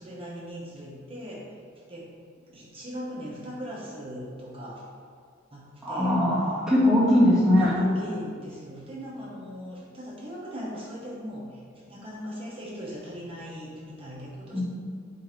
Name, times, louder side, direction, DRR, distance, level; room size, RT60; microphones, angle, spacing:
voice 1, 0.0-1.6 1.9-2.1 2.5-4.8 5.5-6.2 7.6-11.6 11.9-14.6, equal, 30° right, -6 dB, 1.0 m, -39 dB
voice 2, 5.8-7.8 14.5-14.6, left 1 dB, 5° right, -8 dB, 1.6 m, -21 dB
7.6 x 2.8 x 5.1 m, 2.1 s
head